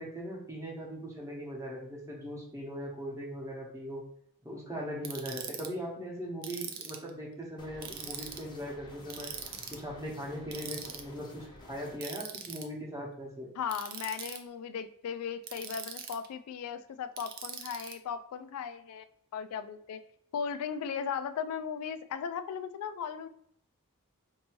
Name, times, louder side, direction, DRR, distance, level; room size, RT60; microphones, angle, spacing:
voice 1, 0.0-4.0 4.4-9.3 9.7-13.5, equal, 15° right, -3 dB, 0.9 m, -40 dB
Ratchet pawl, 5.0-5.7 6.4-7.1 7.8-8.4 9.1-9.8 10.5-11.0 12.0-12.6 13.7-14.4 15.4-16.3 17.2-17.9, right 7 dB, 45° right, 0.4 m, -41 dB
sound 1, 7.6-12.0, left 2 dB, 20° left, 0.6 m, -51 dB
voice 2, 13.6-19.0 19.3-20.0 20.3-23.3, left 7 dB, 85° left, 10 dB, 0.3 m, -37 dB
4.4 x 2.7 x 3.0 m, 0.69 s
head